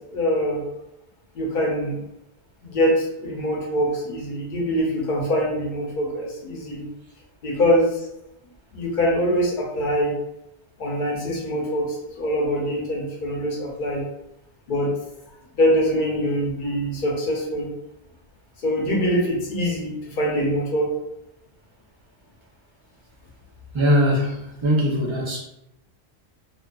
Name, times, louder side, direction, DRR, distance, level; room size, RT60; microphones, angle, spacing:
voice 1, 0.1-0.6 1.3-2.0 2.6-6.9 7.4-8.0 8.7-10.1 10.8-14.1 14.7-14.9 15.6-17.7 18.6-20.9, equal, 50° left, -2 dB, 0.8 m, -23 dB
voice 2, 23.7-25.4, equal, 35° right, -5 dB, 0.6 m, -21 dB
2.4 x 2.3 x 2.3 m, 0.83 s
omnidirectional pair, 1.1 m